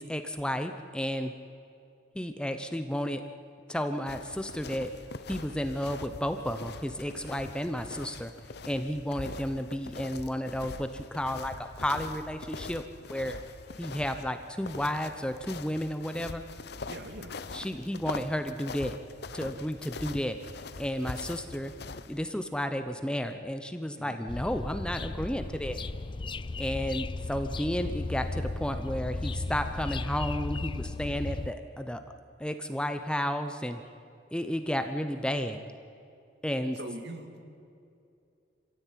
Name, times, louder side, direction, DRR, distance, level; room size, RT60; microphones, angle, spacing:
voice 1, 0.0-1.3 2.1-3.2 3.7-4.9 5.3-8.3 8.6-12.8 13.1-13.4 13.8-16.4 17.5-19.0 19.3-20.4 20.8-21.7 22.1-25.8 26.6-32.0 32.4-33.8 34.3-35.6 36.4-36.8, equal, 5° left, 8 dB, 0.8 m, -32 dB
sound 1, 4.1-22.3, left 3 dB, 60° left, 0.9 m, -43 dB
voice 2, 16.9-17.4 24.0-24.2 36.7-37.4, right 1 dB, 60° right, 5 dB, 2.5 m, -42 dB
sound 2, 24.3-31.5, left 2 dB, 25° left, 0.5 m, -35 dB
26.5 x 16.0 x 9.3 m, 2.6 s
head